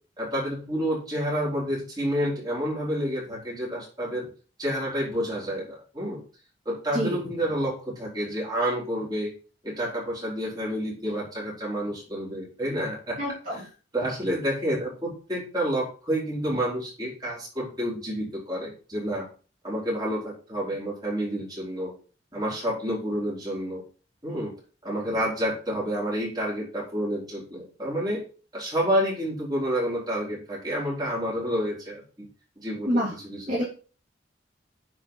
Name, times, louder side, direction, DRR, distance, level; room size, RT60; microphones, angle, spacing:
voice 1, 0.2-4.3 4.6-6.2 6.6-9.3 9.6-13.2 13.5-13.6 13.9-19.3 19.6-21.9 22.3-23.8 24.2-24.5 24.8-28.2 28.5-32.3 32.6-33.6, equal, 20° right, -5 dB, 4.5 m, -29 dB
voice 2, 13.2-13.6 32.9-33.1 33.5-33.6, equal, 40° right, -7 dB, 3.0 m, -26 dB
9.8 x 4.9 x 3.9 m, 0.37 s
head